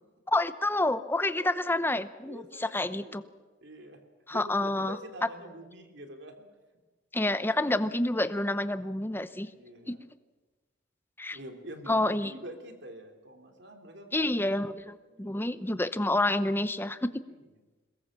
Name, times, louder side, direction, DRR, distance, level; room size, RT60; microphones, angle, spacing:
voice 1, 0.3-3.2 4.3-5.0 7.1-9.5 9.9-10.0 11.2-11.4 11.9-12.3 14.1-17.1, left 2 dB, 10° left, 12 dB, 0.8 m, -28 dB
voice 2, 1.3-3.2 3.6-4.0 4.3-6.4 9.5-10.0 11.3-14.1 14.8-15.8 17.3-17.4, right 1 dB, 65° right, 4 dB, 3.2 m, -47 dB
22.5 x 20.0 x 7.5 m, 1.2 s
head